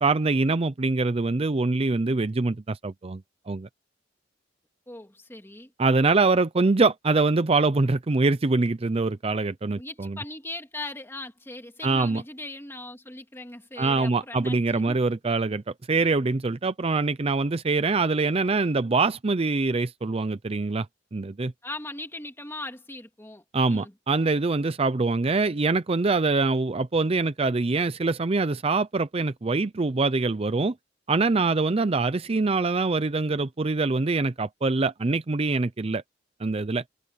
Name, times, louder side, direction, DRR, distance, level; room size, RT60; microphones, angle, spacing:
voice 1, 0.0-3.7 5.8-10.2 11.8-12.2 13.8-15.6 15.9-20.9 21.1-21.5 23.5-30.7 31.1-36.0 36.4-36.8, right 3 dB, 35° right, 0.5 m, -24 dB
voice 2, 4.9-5.7 9.8-15.0 21.6-23.9, left 2 dB, 15° left, 2.5 m, -39 dB
head